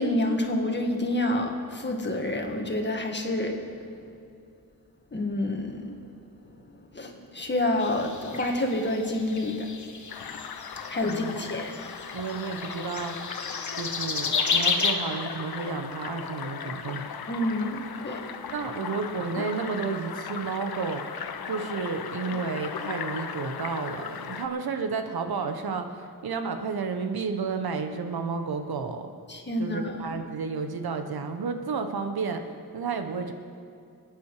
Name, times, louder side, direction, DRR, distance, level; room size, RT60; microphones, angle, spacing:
voice 1, 0.0-3.5 5.1-6.0 6.9-9.7 10.9-11.7 17.3-18.2 29.3-29.9, left 1 dB, 30° left, 2 dB, 1.9 m, -28 dB
sound 1, 7.8-11.2 11.7-14.9, left 5 dB, 55° left, 1.3 m, -31 dB
sound 2, 10.1-24.5, left 6 dB, 80° left, 0.9 m, -37 dB
voice 2, 11.0-11.4 12.1-13.2 13.7-17.1 18.5-21.1 21.5-29.1 29.6-32.5 32.7-33.3, right 5 dB, 90° right, 7 dB, 1.2 m, -31 dB
23.0 x 9.2 x 4.9 m, 2.5 s
wide cardioid pair, 80°, 36 cm